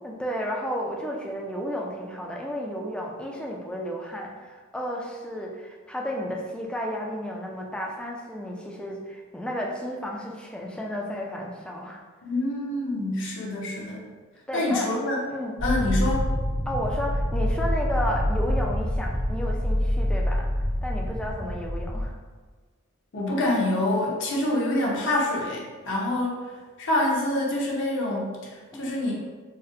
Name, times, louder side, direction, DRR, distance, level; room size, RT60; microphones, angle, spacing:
voice 1, 0.0-12.0 14.5-14.9 15.3-15.5 16.7-22.1 28.7-28.9, equal, 5° left, -1 dB, 0.3 m, -32 dB
voice 2, 12.2-14.0 14.5-15.2 15.6-16.3 23.1-26.3 26.8-29.1, left 1 dB, 65° left, -3 dB, 0.7 m, -26 dB
sound 1, 15.6-22.0, equal, 80° left, 1.0 m, -26 dB
4.0 x 2.1 x 2.6 m, 1.4 s
head